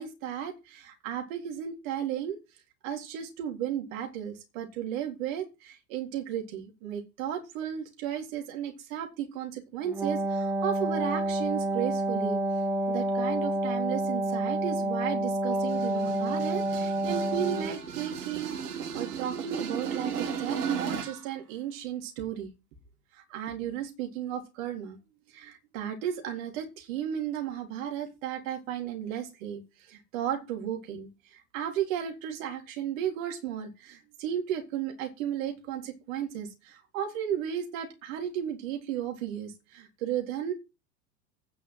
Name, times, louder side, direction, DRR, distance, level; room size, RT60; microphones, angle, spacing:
voice 1, 0.0-2.4 2.8-12.4 12.9-22.5 23.1-25.0 25.3-40.5, right 9 dB, 55° right, 3 dB, 3.9 m, -34 dB
Wind instrument woodwind instrument, 9.8-17.8, right 1 dB, 5° right, 1.0 m, -29 dB
sound 1, 15.5-21.3, right 7 dB, 70° right, 2.4 m, -35 dB
9.8 x 6.2 x 7.8 m, 0.26 s
figure-of-eight pair, 90°, 48 cm